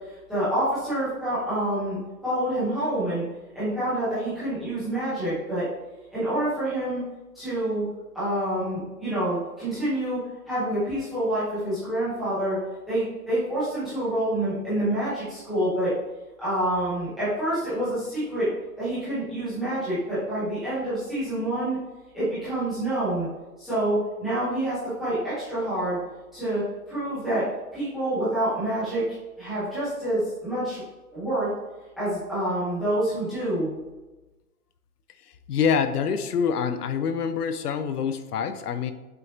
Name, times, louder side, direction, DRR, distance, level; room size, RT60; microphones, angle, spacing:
voice 1, 0.3-3.2 3.5-5.6 6.1-7.0 7.3-7.9 8.1-10.2 10.5-12.6 12.9-15.9 16.4-18.5 18.8-21.8 22.1-23.3 23.6-26.0 26.3-27.4 27.7-29.0 29.4-30.8 31.1-31.5 32.0-33.7, right 1 dB, ahead, -17 dB, 0.5 m, -27 dB
voice 2, 35.5-38.9, left 6 dB, 85° left, 10 dB, 0.6 m, -26 dB
6.3 x 2.8 x 2.7 m, 1.1 s
hypercardioid pair, 150°, 45 cm